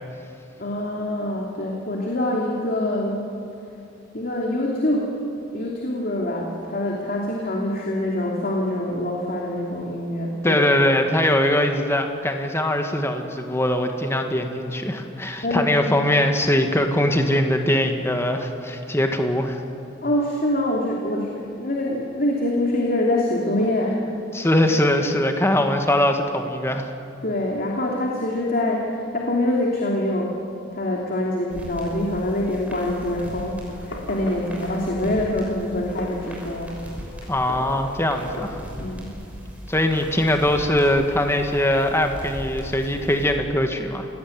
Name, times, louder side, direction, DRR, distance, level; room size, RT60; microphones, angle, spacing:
voice 1, 0.6-3.3 4.1-5.1 5.5-10.6 15.4-15.9 20.0-24.0 27.2-30.3 30.7-36.8 38.8-39.1, left 1 dB, 50° left, -1 dB, 2.9 m, -25 dB
voice 2, 10.4-19.6 24.3-26.9 37.3-38.6 39.7-44.1, left 1 dB, 15° left, 4 dB, 1.7 m, -21 dB
sound 1, 31.5-43.3, equal, 5° right, 6.0 m, -38 dB
Fireworks, 33.7-39.0, left 1 dB, 85° left, 3.8 m, -39 dB
28.0 x 17.5 x 9.3 m, 2.7 s
head